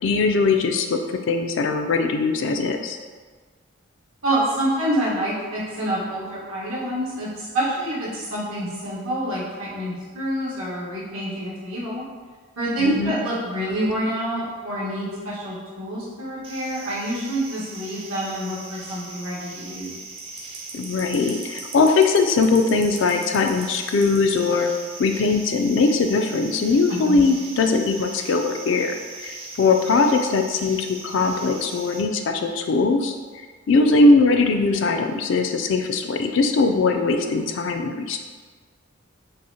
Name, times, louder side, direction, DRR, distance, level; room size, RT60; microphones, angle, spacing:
voice 1, 0.0-1.0 1.3-3.0 12.8-13.1 20.7-24.7 25.0-28.9 29.2-33.1 33.7-38.2, left 3 dB, 60° left, 5 dB, 0.3 m, -20 dB
voice 2, 4.2-12.0 12.6-20.0 27.0-27.2, right 1 dB, 85° right, -8 dB, 1.4 m, -27 dB
sound 1, 16.4-32.0, right 3 dB, 25° right, 0.3 m, -39 dB
5.4 x 2.1 x 2.8 m, 1.5 s
head